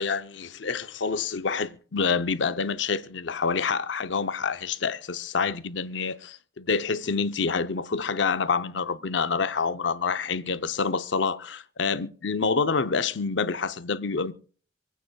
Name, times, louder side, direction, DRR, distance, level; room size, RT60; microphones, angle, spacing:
voice 1, 0.0-14.3, left 5 dB, 90° left, 0.7 m, -27 dB
26.5 x 9.2 x 2.3 m
head